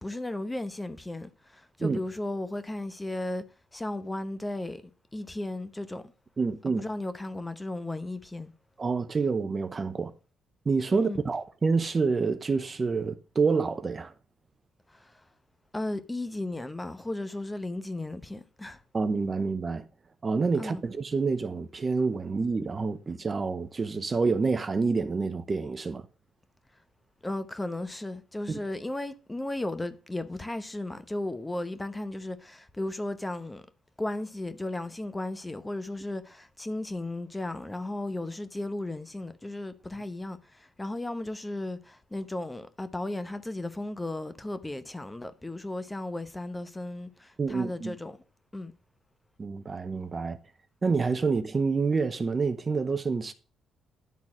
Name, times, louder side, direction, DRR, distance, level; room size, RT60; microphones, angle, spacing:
voice 1, 0.0-3.4 3.7-4.8 5.1-6.0 6.8-8.5 10.9-11.2 14.9-15.2 15.7-18.8 20.6-20.8 27.2-33.6 34.0-48.2 48.5-48.7, left 2 dB, 15° left, 0.9 m, -35 dB
voice 2, 6.4-6.8 8.8-10.1 10.7-14.1 18.9-19.8 20.2-26.0 28.5-28.6 47.4-48.0 49.4-50.4 50.8-53.3, right 4 dB, 30° right, 0.7 m, -27 dB
11.0 x 4.1 x 6.1 m
cardioid pair, 90°, 0 cm